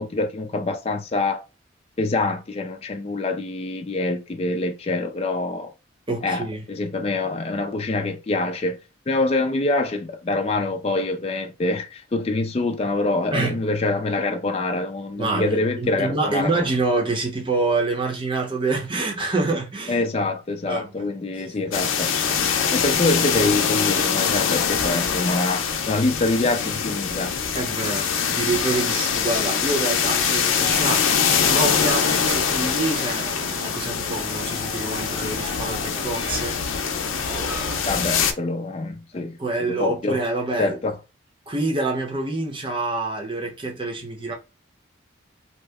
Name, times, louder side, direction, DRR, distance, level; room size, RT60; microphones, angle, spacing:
voice 1, 0.0-1.5 2.0-5.7 6.2-8.8 9.1-16.6 19.9-22.2 22.7-27.3 37.9-39.4 39.7-40.2 40.6-41.0, left 2 dB, 30° left, 0.4 m, -25 dB
voice 2, 6.1-6.6 13.3-13.6 15.2-20.0 20.6-21.1 21.4-21.9 22.2-22.4 27.5-36.6 37.3-37.8 39.4-40.8 41.5-44.3, right 3 dB, 25° right, 0.8 m, -27 dB
sound 1, 21.7-38.3, left 7 dB, 85° left, 0.5 m, -23 dB
sound 2, 30.5-38.0, right 1 dB, 65° right, 1.1 m, -38 dB
2.8 x 2.1 x 3.4 m
head